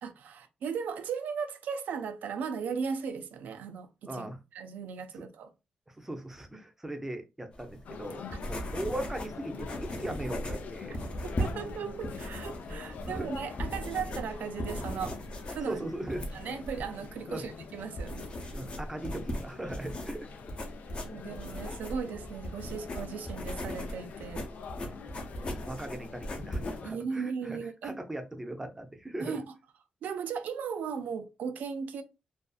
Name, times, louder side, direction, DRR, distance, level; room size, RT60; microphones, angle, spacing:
voice 1, 0.0-4.3 4.5-5.5 8.3-8.4 11.2-15.2 15.5-15.8 16.3-18.5 21.0-24.5 26.8-28.0 29.2-29.4 30.0-32.0, right 6 dB, 90° right, 0.4 m, -37 dB
voice 2, 4.1-4.4 5.9-11.0 12.0-12.1 12.8-13.3 15.6-16.4 17.3-17.4 18.5-20.3 24.7-29.4, right 1 dB, 10° right, 0.5 m, -39 dB
sound 1, 7.5-26.8, equal, 40° left, 0.7 m, -38 dB
sound 2, 7.9-26.9, left 5 dB, 75° left, 0.4 m, -45 dB
2.5 x 2.3 x 2.3 m
cardioid pair, 110°, 3 cm